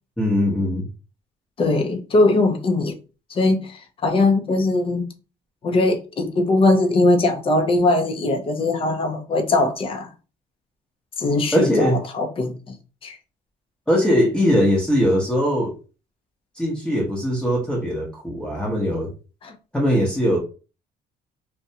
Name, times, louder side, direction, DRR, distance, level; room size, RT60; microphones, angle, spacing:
voice 1, 0.2-0.9 11.5-12.0 13.9-15.7 16.6-19.1 19.7-20.4, equal, 5° left, 0.8 m, -20 dB
voice 2, 1.6-2.9 3.3-5.1 5.6-10.1 11.2-12.8 13.0-13.2 19.4-19.5, left 2 dB, 35° left, 0.5 m, -20 dB
2.4 x 2.2 x 2.7 m
cardioid pair, 110°, 17 cm